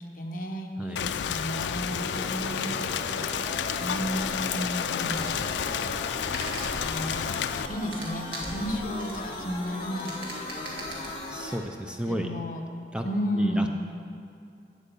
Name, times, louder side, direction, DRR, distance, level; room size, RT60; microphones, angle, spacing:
voice 1, 0.2-2.7 3.8-5.4 6.8-11.1 12.1-13.7, equal, 50° left, 2 dB, 1.0 m, -33 dB
Rain, 1.0-7.7, left 8 dB, 75° left, 0.4 m, -31 dB
sound 1, 1.9-11.6, left 1 dB, 30° left, 1.1 m, -38 dB
sound 2, 3.5-11.1, right 1 dB, 65° right, 1.8 m, -43 dB
voice 2, 11.3-12.3 12.9-13.0 13.3-13.7, equal, 5° right, 4 dB, 0.4 m, -33 dB
8.2 x 8.0 x 6.9 m, 2.5 s
head